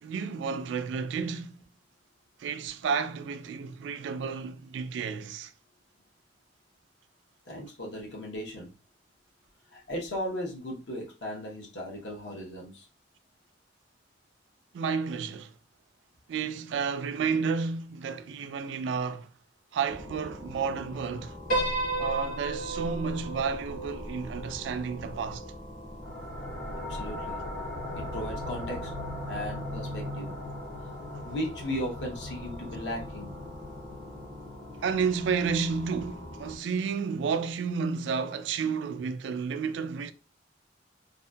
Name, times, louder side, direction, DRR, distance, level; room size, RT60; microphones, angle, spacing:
voice 1, 0.0-1.6 2.4-5.5 14.7-15.5 16.3-19.3 19.7-21.4 22.0-25.4 34.8-40.1, right 5 dB, 80° right, 0.3 m, -31 dB
voice 2, 7.5-8.7 9.7-12.8 26.9-27.4 28.0-28.9 29.3-30.6 31.2-33.3, equal, 70° left, 0.9 m, -36 dB
sound 1, 19.9-36.6, left 1 dB, 15° left, 0.5 m, -44 dB
Piano, 21.5-25.9, right 2 dB, 50° left, 1.3 m, -33 dB
sound 2, 26.0-37.4, left 1 dB, 90° left, 1.1 m, -40 dB
2.7 x 2.5 x 2.2 m
head